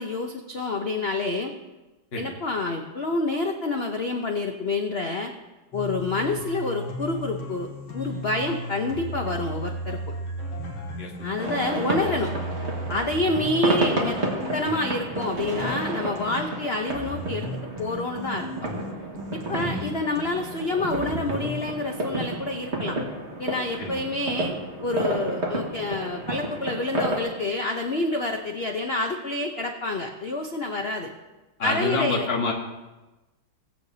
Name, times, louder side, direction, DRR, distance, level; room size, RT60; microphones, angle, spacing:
voice 1, 0.0-1.5 2.2-5.3 5.7-7.7 7.9-10.0 11.2-12.3 12.9-14.2 14.5-17.5 17.8-18.5 19.3-23.0 23.4-24.5 24.8-31.1 31.6-32.3, left 2 dB, 60° left, 3 dB, 0.6 m, -28 dB
sound 1, 5.7-16.4 16.9-20.4 20.9-21.6, equal, 75° left, 2.5 m, -35 dB
sound 2, 11.4-27.2, right 2 dB, 35° right, 1.9 m, -31 dB
voice 2, 19.6-20.0 23.8-24.0 31.6-32.5, left 3 dB, 30° left, -1 dB, 1.6 m, -27 dB
20.5 x 8.2 x 2.8 m, 1.1 s
omnidirectional pair, 2.2 m